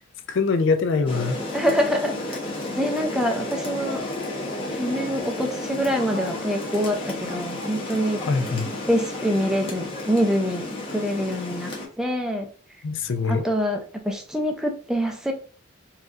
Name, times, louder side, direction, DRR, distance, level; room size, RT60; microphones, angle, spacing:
voice 1, 0.3-1.4 8.2-8.7 12.8-13.4, left 4 dB, 60° left, 0.4 m, -23 dB
Rain, 1.1-11.9, left 1 dB, 25° left, 0.8 m, -32 dB
voice 2, 1.5-2.4 2.8-4.1 4.7-8.2 8.9-12.5 13.2-15.3, equal, 5° right, 0.4 m, -25 dB
4.1 x 2.4 x 2.4 m
head